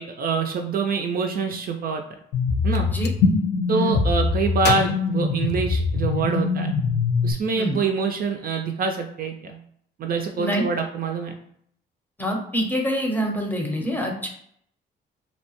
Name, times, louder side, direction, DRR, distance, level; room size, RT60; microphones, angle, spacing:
voice 1, 0.0-2.0 2.6-2.9 3.7-6.7 7.2-9.6 10.0-11.4, right 5 dB, 50° right, 4 dB, 0.4 m, -25 dB
sound 1, 2.3-7.3, left 4 dB, 80° left, 0.9 m, -23 dB
Gunshot gunfire, 2.5-3.2 4.6-6.1, left 6 dB, 55° left, 0.4 m, -33 dB
voice 2, 12.2-14.3, equal, 10° left, 1 dB, 0.7 m, -26 dB
2.7 x 2.1 x 2.9 m, 0.67 s
cardioid pair, 90°, 20 cm